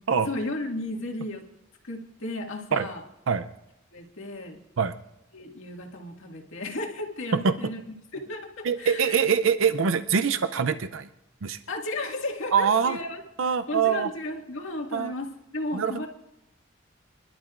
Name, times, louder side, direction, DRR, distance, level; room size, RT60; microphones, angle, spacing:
voice 1, 0.3-1.4 1.8-3.0 3.9-4.6 5.3-7.8 8.1-9.2 11.7-13.2 13.7-15.3 15.5-16.1, left 2 dB, 80° left, 1 dB, 2.0 m, -34 dB
voice 2, 8.6-11.1 11.4-11.6 12.5-13.0 13.4-14.1 14.9-15.1 15.7-16.1, right 6 dB, 80° right, 11 dB, 0.6 m, -24 dB
26.5 x 12.0 x 2.5 m, 0.88 s
head